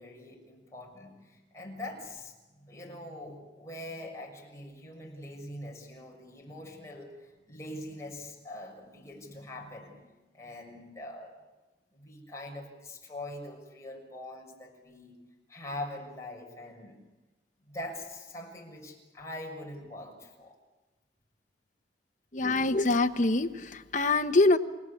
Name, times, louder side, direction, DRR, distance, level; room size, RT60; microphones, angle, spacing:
voice 1, 0.0-11.3 11.9-15.2 15.5-17.0 17.6-20.6, left 1 dB, 15° left, -1 dB, 6.5 m, -43 dB
voice 2, 22.3-24.6, left 2 dB, 45° left, 6 dB, 1.1 m, -24 dB
29.5 x 17.5 x 8.6 m, 1.1 s
head